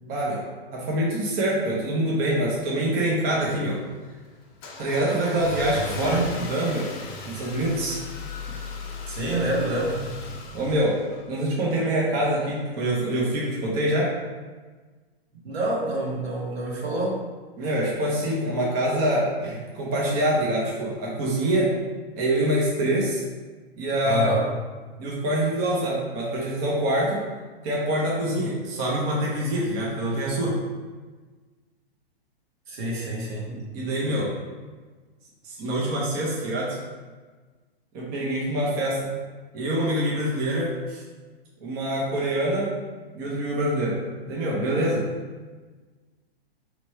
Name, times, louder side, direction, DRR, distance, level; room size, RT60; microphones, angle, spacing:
voice 1, 0.0-3.8 4.8-6.9 7.2-8.0 10.5-11.0 11.3-14.1 17.6-21.7 22.2-23.2 23.8-24.3 25.0-27.2 27.6-30.6 33.5-34.3 35.6-36.8 37.9-39.1 39.5-41.0 41.6-42.7 43.1-44.0 44.3-45.1, right 1 dB, 30° right, -5 dB, 1.0 m, -25 dB
Car / Engine starting, 3.4-11.5, left 3 dB, 30° left, 0.7 m, -37 dB
voice 2, 6.0-6.3 9.1-10.0 15.4-17.2 24.0-24.5 32.7-33.5 34.0-34.3, right 1 dB, 75° right, -4 dB, 1.5 m, -27 dB
3.2 x 3.1 x 4.5 m, 1.4 s
hypercardioid pair, 130°, 31 cm